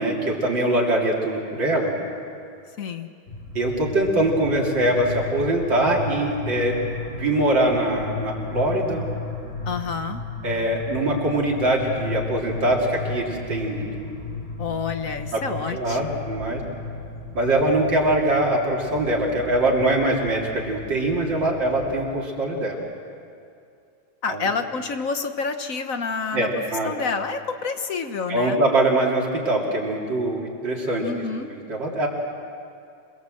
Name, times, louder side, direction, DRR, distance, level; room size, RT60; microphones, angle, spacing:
voice 1, 0.0-2.0 3.5-6.8 7.1-9.0 10.4-13.9 15.3-15.4 15.7-16.6 17.3-22.8 24.3-24.4 26.3-27.0 28.3-31.1 31.7-32.1, right 1 dB, 60° right, -2 dB, 3.4 m, -23 dB
voice 2, 2.8-3.1 9.6-10.2 14.6-16.3 24.2-28.6 31.0-31.5, left 5 dB, 50° left, 8 dB, 1.2 m, -28 dB
sound 1, 3.3-22.0, left 3 dB, 30° left, 5.2 m, -35 dB
27.5 x 21.0 x 7.7 m, 2.5 s
omnidirectional pair, 2.2 m